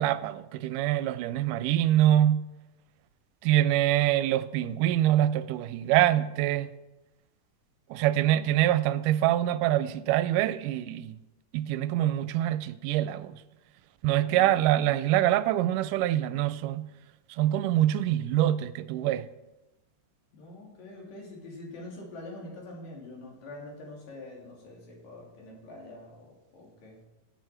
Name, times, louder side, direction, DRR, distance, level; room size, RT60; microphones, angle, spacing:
voice 1, 0.0-2.4 3.4-6.7 7.9-11.2 11.5-13.4 14.0-16.9 17.3-19.3, right 13 dB, 80° right, 2.0 m, -25 dB
voice 2, 14.2-15.0 20.3-27.0, left 2 dB, 85° left, 4.6 m, -45 dB
17.0 x 8.9 x 4.4 m
omnidirectional pair, 3.8 m